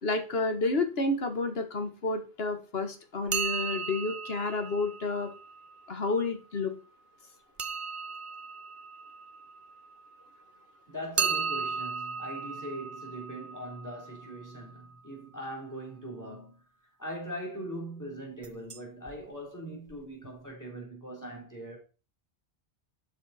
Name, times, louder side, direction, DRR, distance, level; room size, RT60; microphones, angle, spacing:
voice 1, 0.0-5.3 5.9-6.7, left 3 dB, 65° left, 1.6 m, -30 dB
sound 1, 3.3-6.0 7.6-10.3 11.2-15.0 18.4-18.8 19.1-19.2 19.9-20.0 20.2-20.3, right 5 dB, 35° right, 0.6 m, -36 dB
voice 2, 10.9-16.6 17.0-21.8, right 1 dB, 15° left, 3.5 m, -41 dB
11.5 x 5.4 x 4.2 m
omnidirectional pair, 1.1 m